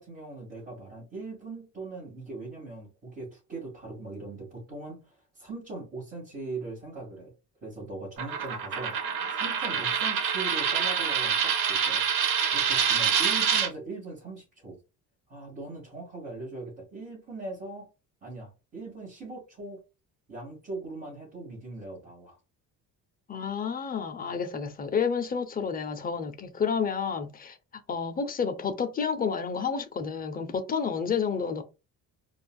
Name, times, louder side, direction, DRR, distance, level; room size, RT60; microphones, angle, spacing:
voice 1, 0.0-7.3 7.6-9.0 9.3-12.0 12.5-14.8 15.3-17.9 18.2-19.8 20.3-22.4, right 3 dB, 30° right, 2.1 m, -40 dB
Coin (dropping), 8.2-13.7, right 7 dB, 75° right, 1.0 m, -26 dB
voice 2, 23.3-27.5 27.9-31.6, left 6 dB, 25° left, 0.5 m, -30 dB
4.4 x 2.4 x 2.3 m
cardioid pair, 135°, 35 cm